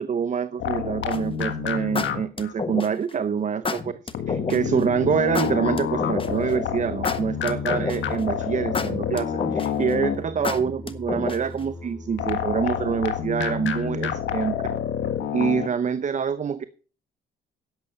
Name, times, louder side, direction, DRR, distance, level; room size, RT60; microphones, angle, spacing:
voice 1, 0.0-3.9 4.3-14.6 15.3-16.6, right 7 dB, 40° right, 14 dB, 0.7 m, -26 dB
sound 1, 0.6-2.5 4.1-10.5 12.2-15.7, left 8 dB, 70° left, 1.6 m, -28 dB
sound 2, 1.1-1.4 2.0-3.1 3.6-4.6 5.3-6.5 7.0-8.2 8.7-9.9 10.4-11.6, left 4 dB, 25° left, 1.3 m, -29 dB
Singing, 4.9-12.8, left 2 dB, 5° left, 3.3 m, -40 dB
11.5 x 8.8 x 5.8 m, 0.39 s
cardioid pair, 90°, 20 cm